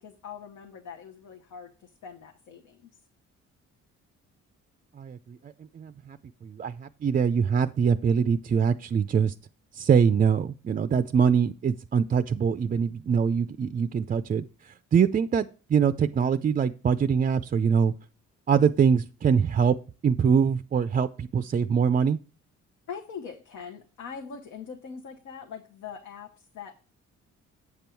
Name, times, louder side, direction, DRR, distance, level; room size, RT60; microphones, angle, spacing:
voice 1, 0.0-2.9 22.9-26.7, left 6 dB, 75° left, 4 dB, 1.1 m, -42 dB
voice 2, 5.0-6.2 6.4-9.3 9.7-17.9 18.5-19.8 20.0-22.2, right 6 dB, 30° right, 11 dB, 0.4 m, -24 dB
8.2 x 5.3 x 4.4 m, 0.38 s
cardioid pair, 90°, 30 cm